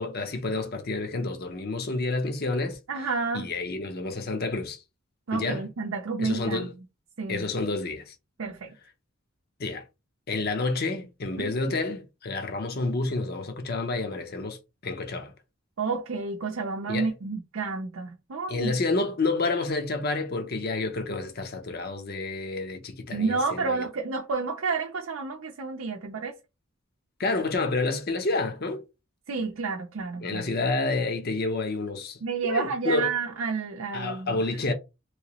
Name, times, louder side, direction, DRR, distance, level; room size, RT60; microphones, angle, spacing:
voice 1, 0.0-2.8 3.3-4.8 5.3-5.6 6.2-6.7 7.3-8.1 9.6-9.8 10.3-14.6 14.8-15.3 16.9-17.1 18.5-23.9 27.2-28.8 30.2-33.1 33.9-34.7, left 3 dB, 50° left, 0.7 m, -29 dB
voice 2, 2.9-3.5 5.3-6.7 7.2-7.5 8.4-8.7 11.4-11.7 15.8-18.7 23.1-26.3 29.3-30.5 32.2-34.4, right 4 dB, 80° right, 0.6 m, -30 dB
3.1 x 2.9 x 2.9 m
head